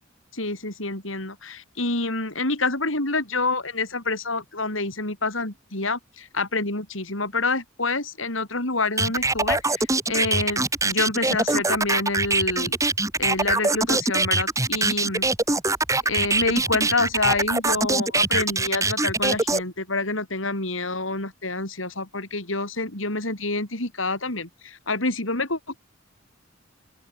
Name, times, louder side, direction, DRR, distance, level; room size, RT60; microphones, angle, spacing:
voice 1, 0.3-12.7 13.2-15.3 16.0-25.8, left 3 dB, 75° left, 7.4 m, -27 dB
sound 1, 9.0-19.6, right 3 dB, 15° right, 4.3 m, -23 dB
open air
head